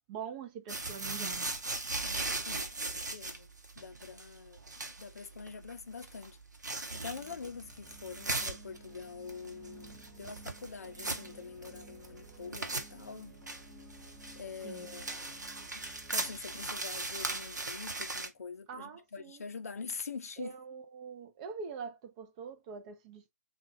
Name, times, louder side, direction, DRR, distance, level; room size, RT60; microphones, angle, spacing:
voice 1, 0.1-1.5 14.6-14.9 18.7-19.4 20.4-23.3, right 6 dB, 25° right, 0.5 m, -44 dB
sound 1, 0.7-18.3, right 2 dB, 70° right, 0.7 m, -39 dB
voice 2, 2.0-3.5 3.8-6.4 6.9-13.4 14.3-15.8 16.1-20.6, left 5 dB, 55° left, 0.5 m, -45 dB
sound 2, 6.9-18.4, right 1 dB, ahead, 0.9 m, -56 dB
3.6 x 2.3 x 2.8 m
figure-of-eight pair, 130°, 10 cm